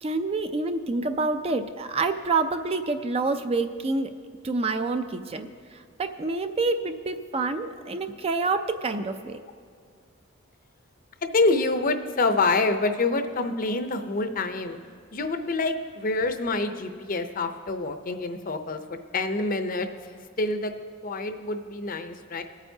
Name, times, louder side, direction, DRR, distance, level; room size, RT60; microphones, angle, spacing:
voice 1, 0.0-4.1 4.4-5.5 6.0-9.4, right 3 dB, 30° right, 8 dB, 0.4 m, -27 dB
voice 2, 11.2-14.8 15.1-19.9 20.4-20.7 21.0-22.4, left 3 dB, 45° left, 7 dB, 0.6 m, -26 dB
21.0 x 8.9 x 2.8 m, 2.1 s
head